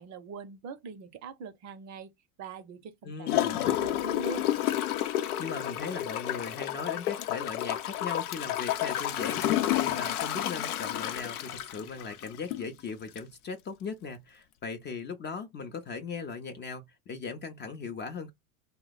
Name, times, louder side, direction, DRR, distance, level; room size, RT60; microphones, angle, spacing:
voice 1, 0.0-2.1 2.4-4.5, right 5 dB, 40° right, 0.6 m, -42 dB
voice 2, 3.0-3.6 5.4-18.3, left 5 dB, 25° left, 0.5 m, -38 dB
Gurgling / Toilet flush, 3.3-12.7 13.2-13.3, left 12 dB, 80° left, 0.7 m, -30 dB
2.7 x 2.1 x 3.9 m
hypercardioid pair, 100°, 45 cm